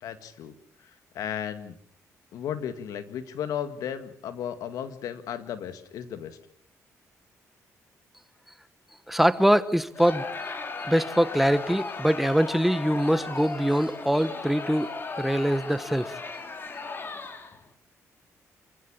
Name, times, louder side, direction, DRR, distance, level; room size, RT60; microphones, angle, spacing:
voice 1, 0.0-0.5 1.1-1.8 2.3-6.4, left 9 dB, 85° left, 10 dB, 2.0 m, -34 dB
voice 2, 9.1-10.2 10.8-14.9 15.2-16.2, equal, 5° right, 13 dB, 1.3 m, -23 dB
Crowd, 9.9-17.7, left 4 dB, 40° left, 3.3 m, -36 dB
28.5 x 15.5 x 8.8 m, 0.70 s
cardioid pair, 90°, 6 cm